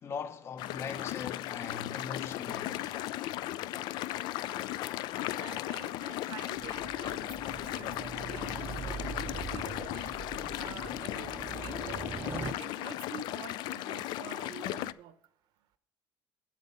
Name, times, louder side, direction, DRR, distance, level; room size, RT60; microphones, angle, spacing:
voice 1, 0.0-3.0, left 6 dB, 30° left, 0.7 m, -40 dB
sound 1, 0.6-14.9, left 15 dB, 65° left, 0.4 m, -36 dB
voice 2, 5.2-9.0 9.4-10.2 10.6-11.3 11.6-12.0 12.4-15.1, right 9 dB, 65° right, 0.9 m, -48 dB
sound 2, 6.5-12.5, right 6 dB, 25° right, 0.5 m, -42 dB
8.2 x 7.8 x 5.4 m
cardioid pair, 165°, 8 cm